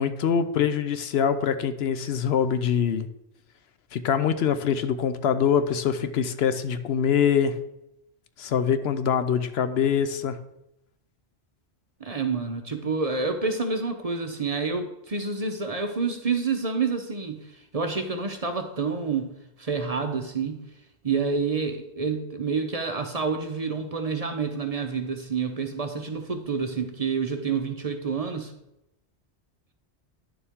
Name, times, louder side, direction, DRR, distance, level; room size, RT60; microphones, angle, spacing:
voice 1, 0.0-3.1 3.9-7.6 8.4-10.4, left 7 dB, 70° left, 11 dB, 0.8 m, -24 dB
voice 2, 12.0-17.5 17.7-19.3 19.6-20.6 21.0-28.5, right 5 dB, 40° right, 5 dB, 0.7 m, -28 dB
10.5 x 6.9 x 3.6 m, 0.86 s
omnidirectional pair, 1.2 m